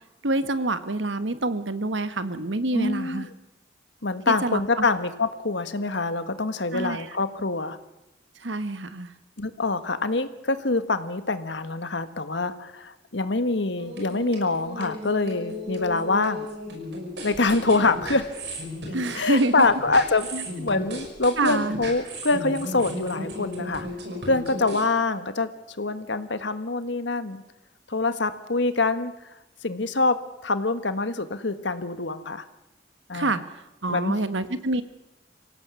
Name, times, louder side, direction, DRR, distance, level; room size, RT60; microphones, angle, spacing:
voice 1, 0.2-3.3 4.3-4.8 6.7-7.1 8.4-9.1 18.9-19.7 20.3-20.4 21.4-21.8 33.1-34.8, right 2 dB, 85° right, 11 dB, 1.5 m, -27 dB
voice 2, 2.7-3.3 4.0-7.8 9.4-16.5 17.2-18.2 19.1-20.3 20.6-23.9 24.2-25.5 25.8-27.4 27.9-29.1 29.6-30.2 30.4-32.4 33.1-33.3 33.9-34.2, left 3 dB, 75° left, 11 dB, 1.5 m, -25 dB
sound 1, 13.8-24.8, left 1 dB, 65° right, 5.9 m, -35 dB
25.5 x 17.0 x 8.3 m, 0.96 s
head